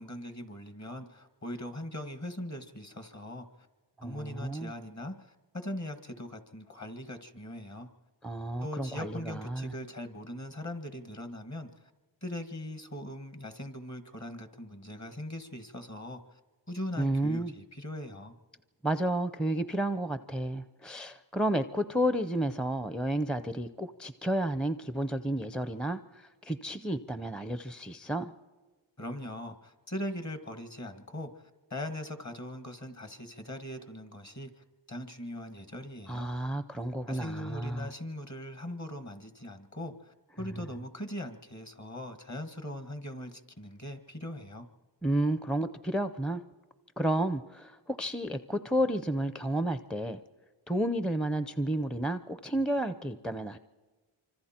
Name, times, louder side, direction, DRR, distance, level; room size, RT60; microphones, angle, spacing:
voice 1, 0.0-3.5 4.0-7.9 8.6-11.9 12.2-16.4 16.7-18.4 29.0-36.3 37.1-44.7, left 1 dB, 35° left, 8 dB, 1.8 m, -40 dB
voice 2, 4.0-4.7 8.2-9.7 17.0-17.5 18.8-28.3 36.1-37.9 40.5-40.6 45.0-46.4 47.0-50.2 50.7-53.6, right 1 dB, ahead, 11 dB, 0.6 m, -31 dB
25.5 x 25.0 x 4.4 m, 1.3 s
wide cardioid pair, 60°, 47 cm